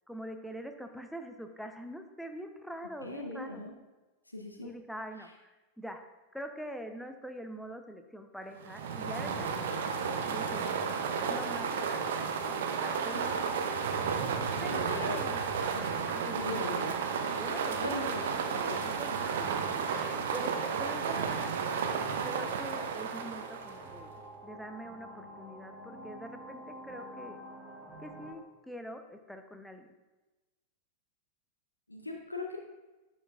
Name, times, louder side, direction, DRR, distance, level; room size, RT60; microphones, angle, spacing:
voice 1, 0.1-3.7 4.6-6.0 6.3-9.7 10.2-10.7 11.3-13.5 14.6-15.4 16.1-16.6 17.2-18.1 18.4-21.5 22.2-27.4 28.0-29.9, equal, ahead, 6 dB, 0.6 m, -44 dB
voice 2, 3.0-3.7 4.3-4.7 13.1-13.3 14.4-15.2 15.7-15.9 16.3-17.0 17.8-18.2 18.5-18.9 31.9-32.6, left 2 dB, 85° left, 2 dB, 0.6 m, -39 dB
sound 1, 8.6-24.0, right 6 dB, 60° right, 0.6 m, -33 dB
sound 2, 8.8-28.3, right 1 dB, 20° right, 1.4 m, -47 dB
10.5 x 5.2 x 2.4 m, 1.1 s
figure-of-eight pair, 90°, 0 cm